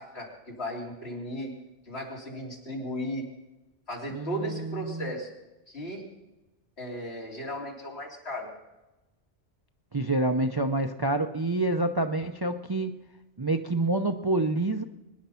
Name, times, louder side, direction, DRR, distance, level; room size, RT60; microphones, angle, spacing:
voice 1, 0.0-1.5 1.9-3.3 3.9-5.3 5.7-6.0 6.8-8.5, equal, 65° left, -1 dB, 3.7 m, -36 dB
voice 2, 4.1-5.1 9.9-13.0 13.4-14.8, right 2 dB, 25° right, 7 dB, 0.5 m, -27 dB
23.0 x 10.5 x 5.7 m, 1.0 s
omnidirectional pair, 1.2 m